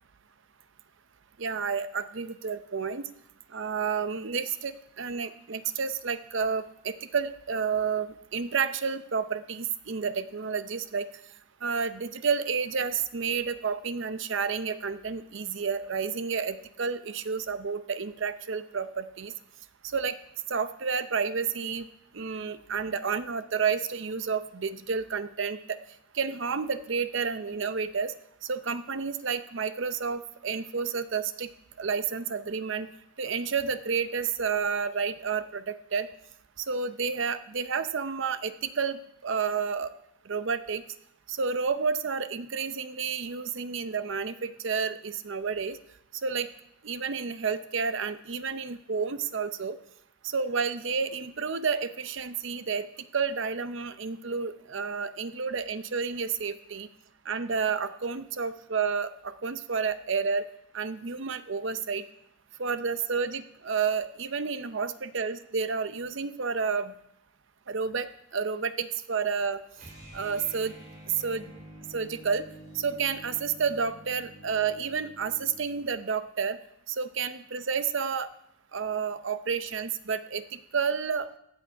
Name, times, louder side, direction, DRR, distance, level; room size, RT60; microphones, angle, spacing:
voice 1, 1.4-3.1 3.5-11.1 11.6-19.3 19.9-20.2 20.5-21.9 22.1-25.8 26.1-28.1 28.4-31.5 31.8-32.9 33.2-36.1 36.6-39.9 40.3-40.8 41.3-45.8 46.2-46.5 46.8-49.8 50.2-52.9 53.1-56.9 57.3-60.5 60.7-62.0 62.6-66.9 67.7-69.6 70.1-70.7 71.2-71.5 71.9-72.4 72.7-76.6 76.9-78.3 78.7-81.3, right 5 dB, 60° right, 12 dB, 0.6 m, -30 dB
sound 1, 69.7-75.8, right 1 dB, 40° right, 4.5 m, -48 dB
15.0 x 8.7 x 4.6 m, 0.81 s
head